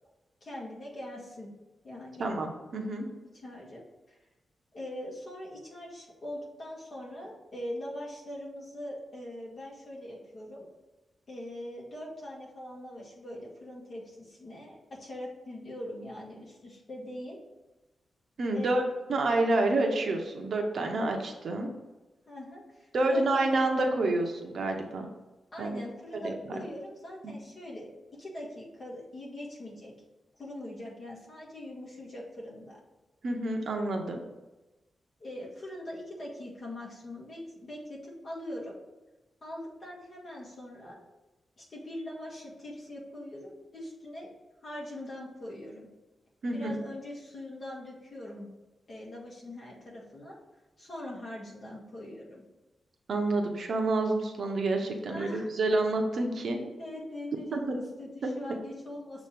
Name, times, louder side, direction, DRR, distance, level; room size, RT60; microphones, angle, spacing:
voice 1, 0.4-1.5 1.8-2.3 3.4-3.8 4.1-4.2 4.7-10.7 11.3-17.4 18.5-18.9 22.3-23.4 25.5-27.9 28.2-29.9 30.4-32.8 35.2-38.8 39.4-41.0 41.6-44.3 44.6-45.9 46.5-48.5 48.9-50.3 50.8-52.4 55.1-55.5 56.6-59.3, left 1 dB, 40° left, -4 dB, 1.6 m, -42 dB
voice 2, 2.2-3.1 18.4-18.8 19.1-21.7 22.9-25.1 25.6-25.8 26.2-26.6 33.2-34.2 46.4-46.8 53.1-56.6 57.5-57.8, right 2 dB, 55° right, 3 dB, 0.8 m, -28 dB
6.6 x 3.0 x 5.3 m, 1.1 s
wide cardioid pair, 160°, 0 cm